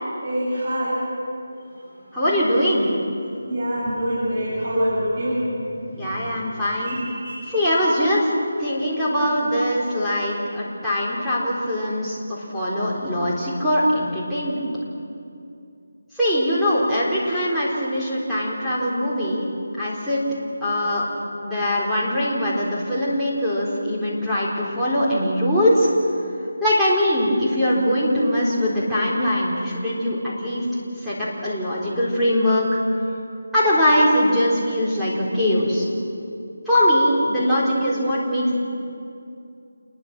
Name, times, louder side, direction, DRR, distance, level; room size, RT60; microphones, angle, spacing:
voice 1, 0.2-1.0 3.5-6.4 6.8-7.5, equal, 35° right, -8 dB, 7.1 m, -26 dB
voice 2, 2.1-2.9 6.0-7.0 7.5-8.3 8.6-14.7 16.2-19.5 19.8-20.2 20.6-21.0 21.4-25.9 26.6-30.6 31.0-32.8 33.5-35.9 36.7-38.5, equal, ahead, -12 dB, 4.1 m, -21 dB
28.5 x 21.5 x 6.2 m, 2.5 s
figure-of-eight pair, 170°, 0 cm